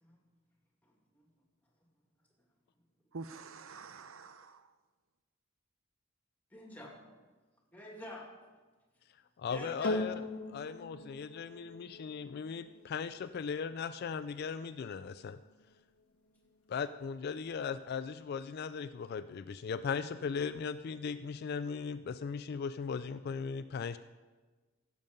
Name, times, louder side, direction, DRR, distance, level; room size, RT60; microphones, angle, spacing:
voice 1, 0.8-1.2 6.5-6.9 7.7-8.3 9.5-10.0, equal, 10° left, -1 dB, 2.3 m, -47 dB
voice 2, 3.1-4.7, right 4 dB, 70° right, 11 dB, 0.7 m, -47 dB
voice 3, 9.4-10.1 10.5-15.4 16.7-24.0, left 6 dB, 50° left, 12 dB, 0.3 m, -38 dB
sound 1, 9.8-18.4 19.1-19.2, left 2 dB, 85° left, 1.2 m, -43 dB
16.5 x 7.5 x 5.3 m, 1.3 s
head